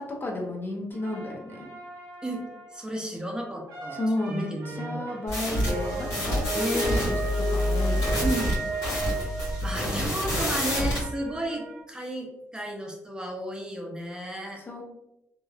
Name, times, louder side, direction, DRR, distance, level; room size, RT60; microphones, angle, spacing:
voice 1, 0.0-1.7 3.9-7.2 7.5-8.2 14.6-14.8, left 1 dB, 35° left, 0 dB, 0.7 m, -33 dB
sound 1, 0.9-2.9 3.7-11.8, right 3 dB, 85° right, 0.8 m, -45 dB
voice 2, 2.2-4.0 4.3-5.1 6.5-7.1 8.2-8.6 9.2-14.6, right 1 dB, 15° right, 0 dB, 0.6 m, -33 dB
sound 2, 5.3-11.0, left 1 dB, 75° left, 1.4 m, -27 dB
sound 3, 5.7-10.3, right 1 dB, 55° right, 0.7 m, -32 dB
3.0 x 2.2 x 2.3 m, 0.88 s
supercardioid pair, 55°, 6 cm